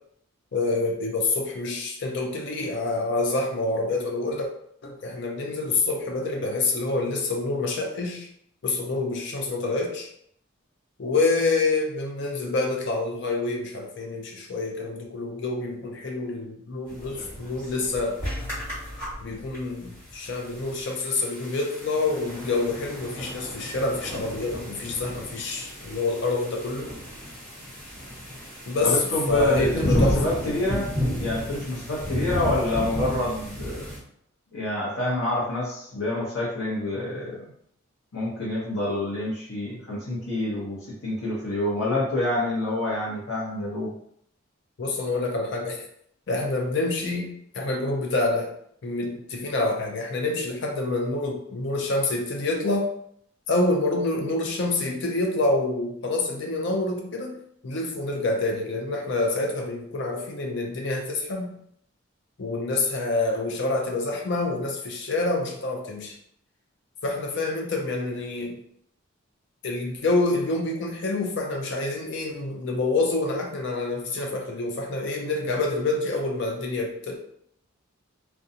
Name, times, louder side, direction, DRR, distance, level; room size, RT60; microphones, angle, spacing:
voice 1, 0.5-4.5 4.8-8.3 8.6-10.1 11.0-18.2 19.2-26.9 28.7-29.0 29.3-30.2 44.8-45.8 46.3-48.5 48.8-52.9 53.5-57.4 57.6-61.5 62.4-66.1 67.0-68.6 69.6-77.2, left 2 dB, 55° left, 2 dB, 0.4 m, -27 dB
sound 1, 16.9-34.0, equal, 10° left, 1.3 m, -32 dB
voice 2, 28.8-30.9 31.2-33.9 34.5-37.5 38.1-43.9, left 1 dB, 85° left, -8 dB, 0.8 m, -27 dB
2.5 x 2.2 x 2.7 m, 0.68 s
head